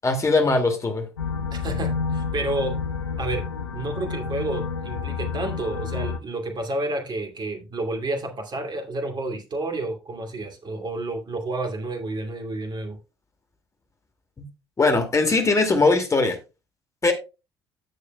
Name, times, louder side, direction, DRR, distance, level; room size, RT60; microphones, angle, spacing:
voice 1, 0.0-1.1 14.4-14.5 14.8-16.4 17.0-17.1, left 3 dB, 25° left, 2.3 m, -20 dB
sound 1, 1.2-6.2, left 5 dB, 80° left, 0.6 m, -29 dB
voice 2, 1.5-2.8 3.2-3.4 3.7-13.0, right 2 dB, 35° right, 2.5 m, -30 dB
16.5 x 6.5 x 2.3 m
figure-of-eight pair, 50°, 13 cm